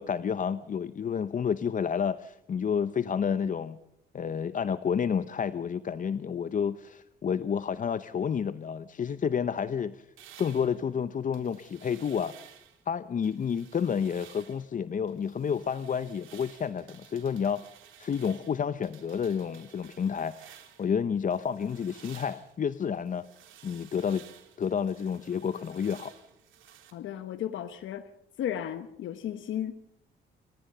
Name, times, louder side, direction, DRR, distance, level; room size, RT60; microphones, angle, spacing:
voice 1, 0.0-3.8 4.1-10.1 10.4-12.3 12.9-17.6 18.0-23.3 23.6-24.2 24.6-26.1, left 7 dB, 40° left, 13 dB, 0.8 m, -30 dB
sound 1, 10.2-12.8 13.2-14.7 15.1-21.0 21.3-26.9, right 10 dB, 80° right, 3.5 m, -54 dB
voice 2, 26.9-28.1 28.4-29.7, left 10 dB, 75° left, 10 dB, 1.1 m, -34 dB
28.5 x 14.0 x 6.7 m, 0.79 s
cardioid pair, 90°, 20 cm